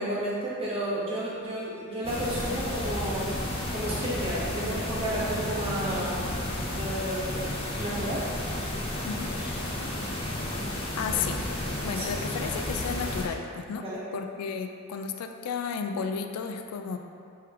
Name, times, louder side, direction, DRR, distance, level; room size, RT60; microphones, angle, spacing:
voice 1, 0.0-3.3 3.7-6.2 6.7-8.3 11.9-12.1 13.8-14.0, right 1 dB, 25° right, -8 dB, 1.0 m, -32 dB
sound 1, 2.0-13.2, left 1 dB, 25° left, 0.5 m, -32 dB
voice 2, 11.0-11.4 11.8-13.8 14.1-17.0, left 6 dB, 90° left, 5 dB, 0.3 m, -33 dB
3.7 x 3.0 x 4.7 m, 2.3 s
head